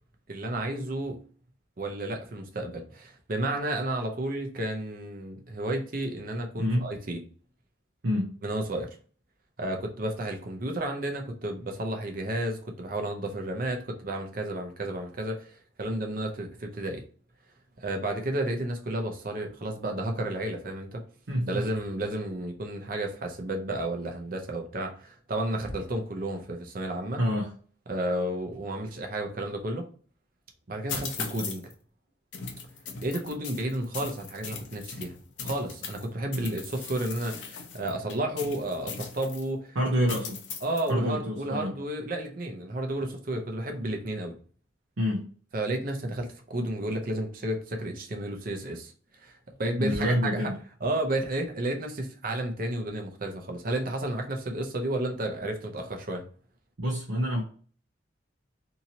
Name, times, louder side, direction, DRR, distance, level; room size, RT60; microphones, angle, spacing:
voice 1, 0.3-1.2 1.8-7.2 8.4-8.9 9.6-17.0 17.8-21.0 21.5-27.2 27.9-29.9 30.7-31.6 33.0-35.1 35.4-39.8 40.6-44.4 45.5-48.9 49.2-49.3 49.6-50.5 50.8-56.2, right 1 dB, 45° right, 0.6 m, -32 dB
voice 2, 6.6-6.9 8.0-8.3 21.3-21.7 27.2-27.5 39.7-40.4 40.9-41.7 45.0-45.2 49.8-50.5 56.8-57.4, equal, 80° right, 0.7 m, -27 dB
sound 1, 30.9-31.7 32.3-36.0 36.3-39.5 40.1-40.9, left 5 dB, 70° left, 0.6 m, -39 dB
2.8 x 2.8 x 2.7 m
head